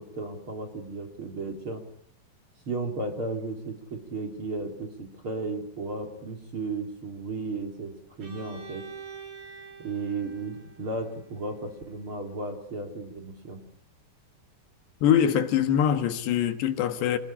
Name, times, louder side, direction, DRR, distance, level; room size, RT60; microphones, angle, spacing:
voice 1, 0.0-1.8 2.7-8.9 9.8-13.6, right 3 dB, 35° right, 3.4 m, -34 dB
Bowed string instrument, 8.2-12.0, right 5 dB, 90° right, 9.3 m, -46 dB
voice 2, 15.0-17.2, left 9 dB, 75° left, 3.5 m, -23 dB
27.0 x 19.5 x 8.7 m
omnidirectional pair, 5.1 m